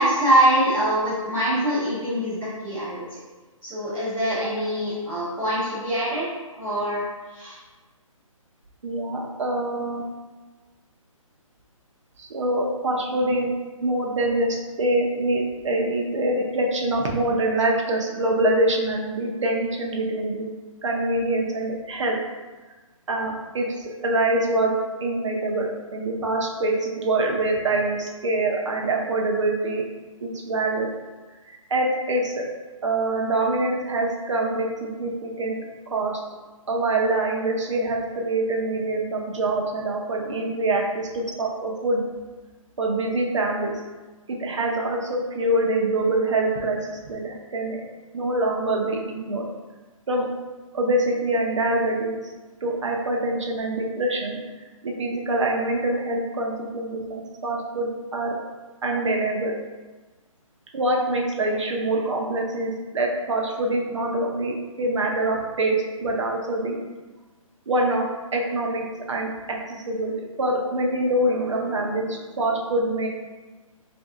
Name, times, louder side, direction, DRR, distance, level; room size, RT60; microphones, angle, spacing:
voice 1, 0.0-2.4 2.6-3.0 3.6-6.2 6.5-7.0 7.3-7.6, right 1 dB, 5° right, -15 dB, 0.6 m, -23 dB
voice 2, 8.8-10.0 12.2-13.5 13.8-20.4 20.8-22.2 23.1-24.7 25.0-29.8 30.2-30.9 31.7-32.5 32.8-35.6 35.9-36.2 36.7-42.0 42.8-43.7 44.3-47.8 48.1-49.4 50.1-50.3 50.7-52.2 52.6-54.4 54.8-58.4 58.8-59.5 60.7-66.8 67.7-70.1 70.4-73.1, right 2 dB, 60° right, 0 dB, 0.7 m, -25 dB
3.1 x 2.7 x 3.5 m, 1.3 s
hypercardioid pair, 170°, 18 cm